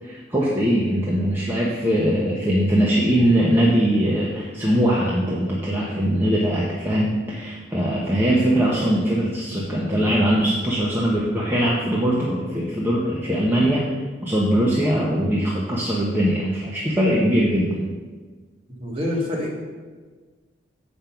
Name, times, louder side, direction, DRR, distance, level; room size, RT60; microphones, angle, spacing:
voice 1, 0.0-13.8 14.2-17.8, equal, 10° right, -5 dB, 0.9 m, -21 dB
voice 2, 18.8-19.6, left 1 dB, 30° right, -4 dB, 2.0 m, -26 dB
7.5 x 5.3 x 5.8 m, 1.4 s
head